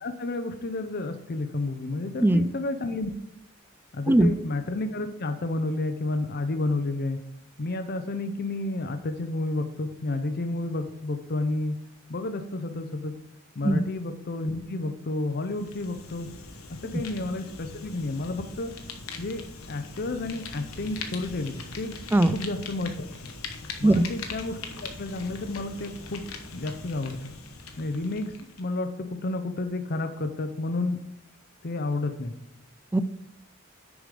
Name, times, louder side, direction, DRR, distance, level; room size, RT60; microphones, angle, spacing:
voice 1, 0.0-3.1 3.9-7.2 7.6-11.8 12.1-13.1 13.6-16.3 16.8-18.7 19.2-19.4 19.7-21.9 22.3-23.3 23.8-26.2 26.5-27.3 27.8-31.0 31.6-32.3, left 2 dB, 50° left, 8 dB, 0.7 m, -31 dB
voice 2, 2.2-2.5 4.1-4.3 13.6-13.8 22.1-22.4 23.8-24.1 32.9-33.0, right 1 dB, 10° right, 14 dB, 0.3 m, -19 dB
Fire, 15.3-28.7, left 4 dB, 85° left, 1.1 m, -41 dB
9.8 x 5.0 x 5.0 m, 0.76 s
head